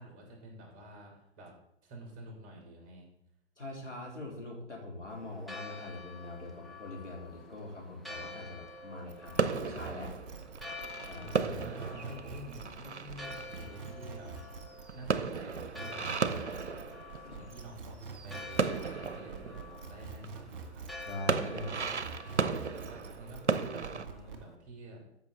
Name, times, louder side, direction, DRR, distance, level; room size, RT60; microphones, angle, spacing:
voice 1, 0.0-1.5 1.8-3.1 11.1-14.3 14.9-16.8 17.3-20.8 21.4-21.9 22.8-25.0, right 1 dB, 25° right, 0 dB, 3.2 m, -49 dB
voice 2, 3.6-10.1 11.1-11.3 17.2-17.4 21.0-21.8, left 2 dB, 85° left, -2 dB, 3.3 m, -43 dB
Church bell, 5.1-24.5, left 3 dB, ahead, 0.7 m, -49 dB
sound 1, 9.1-21.3 21.6-24.4, right 5 dB, 50° right, 2.0 m, -46 dB
sound 2, 9.4-17.7 18.0-20.6 21.0-24.1, right 5 dB, 75° right, 0.8 m, -35 dB
13.5 x 6.1 x 3.9 m, 0.76 s
figure-of-eight pair, 115°, 35 cm